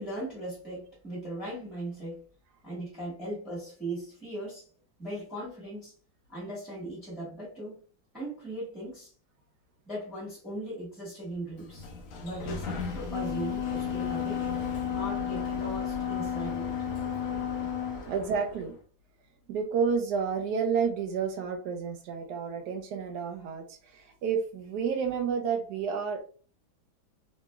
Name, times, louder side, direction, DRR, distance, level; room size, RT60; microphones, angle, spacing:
voice 1, 0.0-2.2 2.6-4.7 5.0-5.9 6.3-7.8 8.1-9.1 9.9-11.9 12.2-14.4 14.9-16.7, right 1 dB, ahead, -8 dB, 1.1 m, -38 dB
Sliding door, 11.4-18.8, left 2 dB, 85° left, 0.7 m, -39 dB
Wind instrument woodwind instrument, 12.9-18.0, left 9 dB, 60° left, 1.1 m, -33 dB
voice 2, 18.1-18.7 19.5-26.2, right 6 dB, 70° right, 5 dB, 1.0 m, -30 dB
3.0 x 2.9 x 2.3 m, 0.41 s
omnidirectional pair, 2.1 m